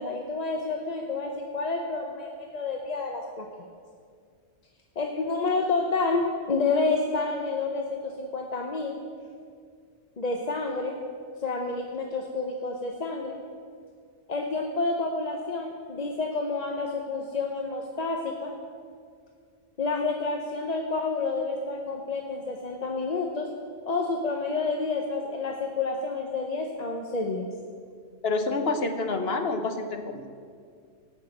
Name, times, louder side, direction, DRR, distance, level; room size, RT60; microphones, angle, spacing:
voice 1, 0.0-3.5 5.0-9.0 10.2-11.0 11.4-13.4 14.3-18.5 19.8-23.5 23.8-27.5, left 3 dB, 40° left, 2 dB, 0.8 m, -29 dB
voice 2, 28.2-30.3, left 3 dB, 60° left, 6 dB, 1.2 m, -28 dB
17.0 x 6.0 x 7.8 m, 2.2 s
omnidirectional pair, 1.2 m